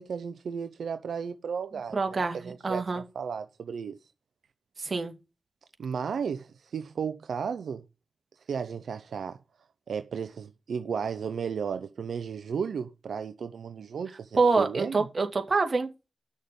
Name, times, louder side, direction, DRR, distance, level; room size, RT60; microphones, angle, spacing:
voice 1, 0.0-3.9 5.8-7.8 8.5-9.4 9.9-15.0, right 6 dB, 90° right, 0.7 m, -34 dB
voice 2, 1.9-3.0 4.8-5.1 14.3-15.9, right 4 dB, 50° right, 2.4 m, -26 dB
9.5 x 6.4 x 5.3 m
cardioid pair, 55°, 0 cm